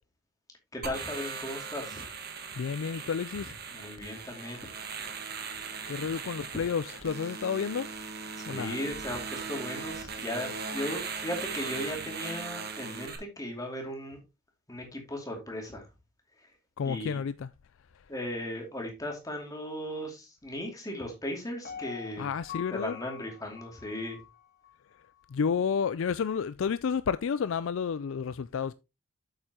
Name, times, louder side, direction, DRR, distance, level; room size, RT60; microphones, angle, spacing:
voice 1, 0.7-2.0 3.7-4.7 8.4-14.2 14.7-15.9 16.8-17.2 18.1-22.3 22.7-24.2, left 1 dB, 15° left, 2.6 m, -37 dB
sound 1, 0.8-13.2, right 5 dB, 45° right, 1.6 m, -39 dB
voice 2, 2.6-3.5 5.8-7.9 8.5-8.8 16.8-17.5 22.2-23.0 25.3-28.7, left 6 dB, 60° left, 0.3 m, -31 dB
Piano, 21.6-24.7 25.2-25.3, left 8 dB, 40° left, 1.4 m, -45 dB
8.1 x 7.9 x 2.9 m
head